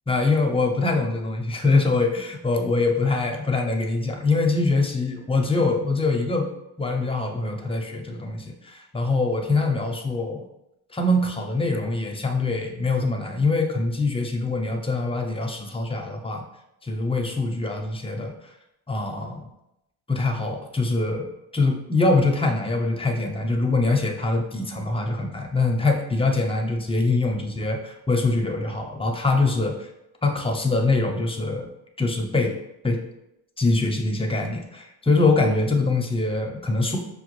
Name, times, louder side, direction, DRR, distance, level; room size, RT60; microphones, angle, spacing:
voice 1, 0.1-6.5 6.8-10.5 10.9-16.4 16.8-18.3 18.9-19.5 20.1-21.3 21.5-29.9 30.2-31.7 32.0-32.5 32.8-33.0 33.6-37.0, left 3 dB, 10° left, 2 dB, 0.5 m, -23 dB
5.9 x 2.3 x 3.0 m, 0.86 s
cardioid pair, 100°, 46 cm